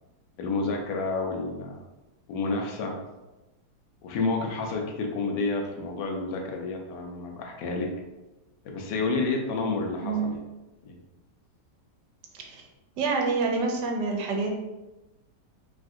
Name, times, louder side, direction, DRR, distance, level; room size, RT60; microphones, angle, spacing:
voice 1, 0.4-1.8 2.3-3.0 4.0-7.9 8.6-10.4 10.9-11.0, left 3 dB, 80° left, 2 dB, 1.2 m, -30 dB
voice 2, 10.0-10.3 12.3-12.7 13.0-14.6, right 4 dB, 80° right, 2 dB, 1.2 m, -27 dB
3.3 x 2.4 x 2.6 m, 1.0 s
omnidirectional pair, 1.9 m